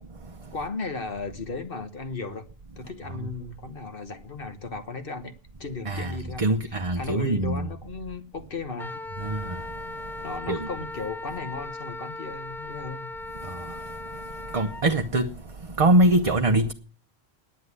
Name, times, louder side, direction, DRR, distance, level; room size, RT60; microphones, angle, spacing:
voice 1, 0.5-2.5 2.8-5.3 5.6-9.0 10.2-13.1, left 3 dB, 60° left, 1.4 m, -36 dB
voice 2, 5.9-7.7 9.2-9.4 10.5-10.6 14.5-15.3 15.8-16.7, right 1 dB, 35° right, 0.8 m, -22 dB
Wind instrument woodwind instrument, 8.8-14.8, left 2 dB, 5° left, 0.4 m, -38 dB
10.0 x 9.0 x 9.6 m
omnidirectional pair, 1.1 m